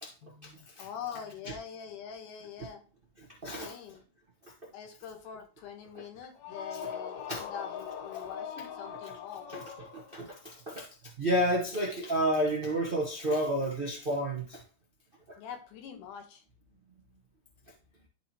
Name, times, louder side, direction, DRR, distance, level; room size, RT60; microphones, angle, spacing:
voice 1, 0.2-2.8 3.5-4.1 4.7-9.5 15.4-16.4, left 8 dB, 90° left, 6 dB, 2.6 m, -44 dB
voice 2, 3.4-3.7 7.3-7.4 9.9-10.9 11.2-14.6, equal, 75° right, -3 dB, 0.5 m, -30 dB
sound 1, 6.3-10.3, left 7 dB, 70° left, 2.0 m, -41 dB
12.5 x 4.5 x 2.9 m, 0.38 s
omnidirectional pair, 3.6 m